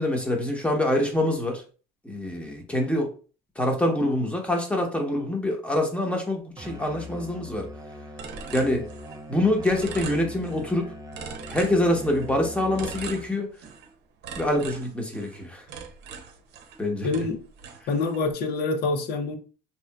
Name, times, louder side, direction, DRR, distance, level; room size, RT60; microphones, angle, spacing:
voice 1, 0.0-1.6 2.0-3.1 3.6-7.7 8.5-8.8 9.3-10.9 11.5-13.5 14.4-15.6 16.8-17.1, left 1 dB, 5° left, 0.9 m, -25 dB
Musical instrument, 6.6-13.4, left 1 dB, 20° right, 0.4 m, -41 dB
sound 1, 8.2-9.3 9.6-10.7 11.1-12.3 12.8-13.9 14.2-16.8 17.1-18.3, right 6 dB, 75° right, 0.7 m, -40 dB
voice 2, 17.0-17.4 17.9-19.4, left 3 dB, 70° left, 0.6 m, -26 dB
3.7 x 2.9 x 2.2 m
cardioid pair, 110°, 17 cm